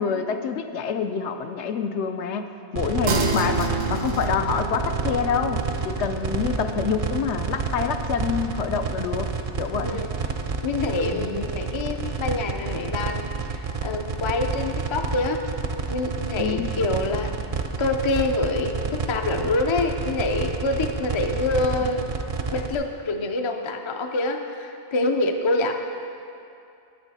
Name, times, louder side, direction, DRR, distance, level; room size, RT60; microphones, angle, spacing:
voice 1, 0.0-2.5 2.7-9.3 9.6-10.0 11.1-11.4 16.4-16.7, left 6 dB, 80° left, 7 dB, 0.9 m, -27 dB
voice 2, 2.8-3.2 9.8-10.1 10.6-15.4 15.9-17.3 17.8-22.1 22.5-25.7, left 2 dB, 45° left, 4 dB, 0.3 m, -26 dB
sound 1, 2.8-22.8, right 5 dB, 55° right, 0.4 m, -29 dB
sound 2, 3.1-12.8, right 3 dB, 90° right, 1.1 m, -33 dB
9.0 x 8.9 x 4.1 m, 2.5 s
omnidirectional pair, 1.2 m